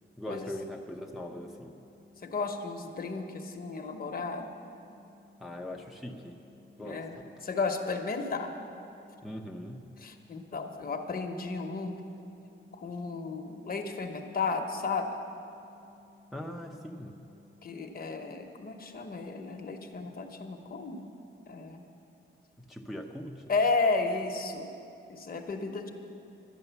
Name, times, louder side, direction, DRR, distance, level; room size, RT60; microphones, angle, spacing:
voice 1, 0.2-1.8 5.4-6.4 6.8-7.1 9.2-9.8 16.3-17.2 22.6-23.5, left 1 dB, ahead, 0 dB, 0.6 m, -40 dB
sound 1, 1.1-18.0, left 2 dB, 85° right, 3.6 m, -59 dB
voice 2, 2.2-4.5 6.8-7.2 7.4-8.6 10.0-12.0 12.7-15.1 17.6-21.1 21.5-21.8 23.5-24.7 25.1-25.9, left 4 dB, 45° left, 5 dB, 0.9 m, -33 dB
12.0 x 9.7 x 7.0 m, 2.8 s
wide cardioid pair, 165°, 21 cm